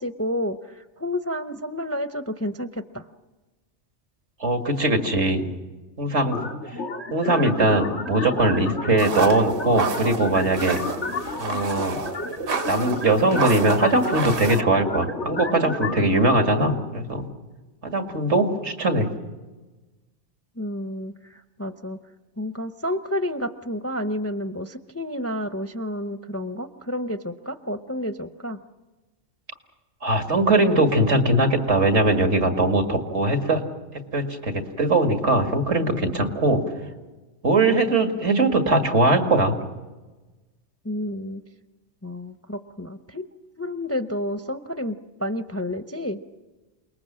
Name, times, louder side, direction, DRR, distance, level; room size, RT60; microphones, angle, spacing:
voice 1, 0.0-3.1 20.6-22.0 22.4-28.6 40.8-41.4 42.0-43.3 43.6-46.2, left 1 dB, 15° left, 9 dB, 0.6 m, -30 dB
voice 2, 4.4-5.5 6.0-6.5 7.1-10.8 11.4-12.0 12.7-17.3 17.8-19.1 30.0-33.6 34.1-36.6 37.4-39.6, right 2 dB, 80° right, 4 dB, 2.5 m, -21 dB
sound 1, 6.3-16.3, left 3 dB, 85° left, 2.6 m, -32 dB
sound 2, 9.0-14.6, right 5 dB, 55° right, 1.1 m, -30 dB
28.5 x 20.0 x 7.6 m, 1.2 s
omnidirectional pair, 1.2 m